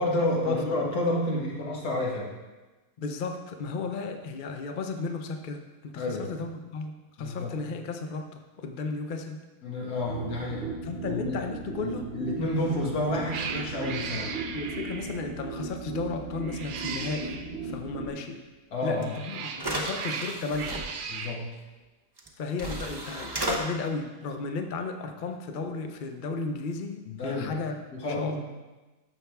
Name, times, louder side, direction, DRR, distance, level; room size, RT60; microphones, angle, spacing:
voice 1, 0.0-2.3 6.0-6.3 7.2-7.6 9.6-10.7 11.1-11.4 11.8-14.3 18.7-19.2 21.1-21.4 27.1-27.5 27.9-28.4, left 1 dB, 75° left, -2 dB, 2.1 m, -30 dB
voice 2, 3.0-9.4 10.8-12.1 14.5-18.4 18.8-20.8 22.4-28.4, left 4 dB, 45° left, 6 dB, 0.6 m, -34 dB
sound 1, 10.1-18.1, right 3 dB, 45° right, 1.0 m, -37 dB
Cat, 12.5-12.8 13.3-15.3 16.4-17.5 18.8-21.4, right 6 dB, 75° right, 0.4 m, -37 dB
sound 2, 19.0-19.1 19.5-20.8 22.2-22.3 22.6-23.6, right 1 dB, 20° right, 0.7 m, -33 dB
13.5 x 5.9 x 3.5 m, 1.2 s
omnidirectional pair, 1.6 m